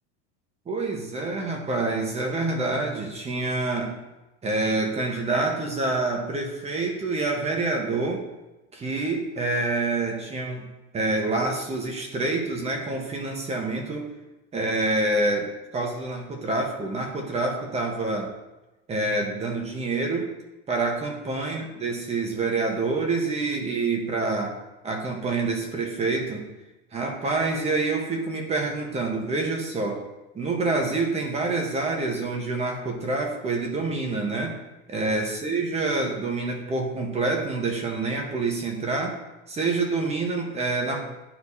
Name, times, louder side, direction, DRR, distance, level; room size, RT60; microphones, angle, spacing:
voice 1, 0.7-4.0 4.4-8.2 8.7-10.7 10.9-14.1 14.5-18.3 18.9-20.3 20.7-24.5 24.8-26.5 26.9-30.0 30.3-34.6 34.9-39.1 39.5-41.0, right 3 dB, 20° right, 1 dB, 1.2 m, -27 dB
11.5 x 4.4 x 2.8 m, 1.1 s
supercardioid pair, 140°, 33 cm